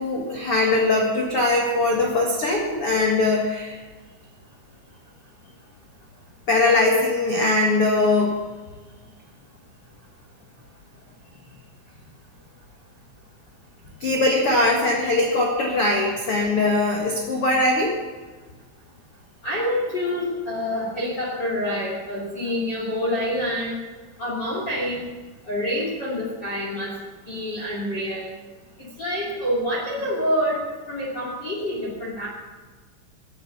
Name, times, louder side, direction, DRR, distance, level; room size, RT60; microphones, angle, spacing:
voice 1, 0.0-3.8 6.5-8.4 14.0-18.0, left 2 dB, 90° left, -1 dB, 1.2 m, -21 dB
voice 2, 19.4-23.8 24.2-25.0 25.5-26.9 27.3-28.3 29.0-30.6 30.9-32.3, equal, 30° left, -3 dB, 2.5 m, -27 dB
16.0 x 9.3 x 7.0 m, 1.4 s
omnidirectional pair, 5.7 m